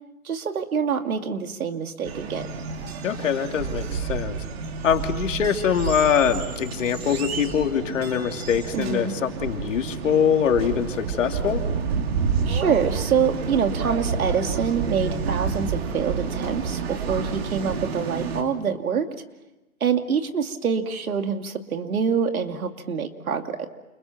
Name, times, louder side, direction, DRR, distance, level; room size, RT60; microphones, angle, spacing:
voice 1, 0.2-2.5 8.7-9.1 12.5-19.1 19.8-23.7, right 6 dB, 80° right, 6 dB, 2.8 m, -26 dB
sound 1, 2.0-18.4, right 5 dB, 45° right, 3.1 m, -29 dB
voice 2, 3.0-4.4 4.8-11.6, left 8 dB, 60° left, 4 dB, 2.9 m, -23 dB
29.0 x 28.5 x 6.0 m, 1.0 s
hypercardioid pair, 160°, 42 cm